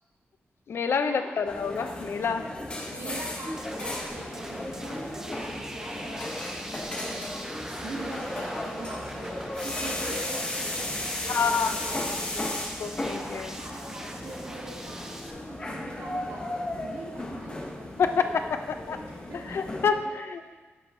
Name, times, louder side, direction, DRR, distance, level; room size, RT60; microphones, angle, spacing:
voice 1, 0.7-2.4 11.3-12.0 12.8-13.6 18.0-18.3 18.9-19.0 19.5-20.4, left 6 dB, 60° left, 8 dB, 0.4 m, -27 dB
sound 1, 1.4-19.9, left 1 dB, 25° left, 0.7 m, -35 dB
voice 2, 2.9-7.5 7.8-9.4 9.6-12.0 12.3-12.5 13.6-18.0 19.0-20.1, right 2 dB, 75° right, -6 dB, 2.3 m, -42 dB
sound 2, 3.5-15.3, right 1 dB, 10° right, 0.4 m, -41 dB
10.0 x 5.6 x 2.6 m, 1.3 s
wide cardioid pair, 175°, 5 cm